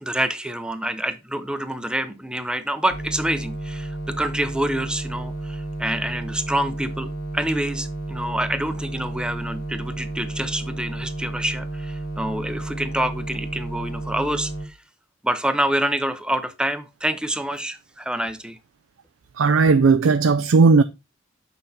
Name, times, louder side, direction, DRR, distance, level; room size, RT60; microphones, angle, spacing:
voice 1, 0.0-14.8 15.2-18.6, right 1 dB, 5° right, 0.7 m, -27 dB
sound 1, 2.9-14.7, right 1 dB, 85° left, 1.5 m, -32 dB
voice 2, 19.4-20.8, right 4 dB, 80° right, 0.4 m, -16 dB
6.6 x 5.8 x 4.1 m
head